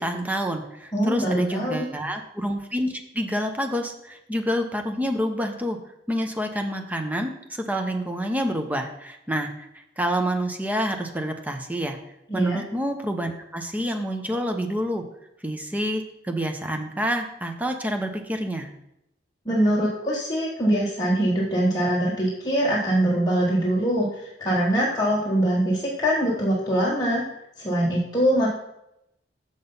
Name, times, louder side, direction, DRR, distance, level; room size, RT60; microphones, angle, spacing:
voice 1, 0.0-5.8 6.1-12.0 12.3-15.0 15.4-18.7, equal, 10° right, 4 dB, 0.8 m, -28 dB
voice 2, 0.9-1.9 12.3-12.6 19.4-27.3 27.6-28.5, right 1 dB, 20° left, -6 dB, 1.3 m, -23 dB
6.7 x 6.2 x 5.5 m, 0.83 s
head